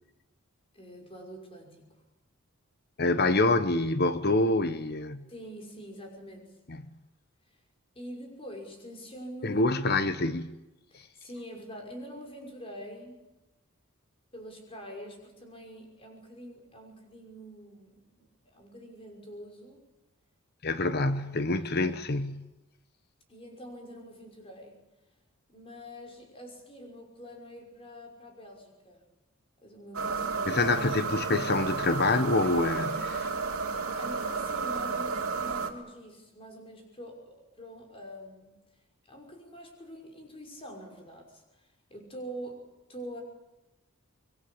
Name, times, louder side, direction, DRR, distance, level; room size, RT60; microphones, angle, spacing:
voice 1, 0.7-1.9 5.3-6.6 8.0-9.6 10.9-13.2 14.3-19.8 21.8-22.0 23.3-24.8 25.5-29.0 29.6-30.6 34.0-38.5 39.1-43.2, equal, 25° left, 5.9 m, -45 dB
voice 2, 3.0-5.3 6.7-6.8 9.4-10.5 10.9-11.0 20.6-22.5 30.5-33.3, left 2 dB, 45° left, 1.1 m, -26 dB
sound 1, 29.9-35.7, right 4 dB, 80° right, 3.0 m, -32 dB
25.5 x 22.5 x 8.7 m
head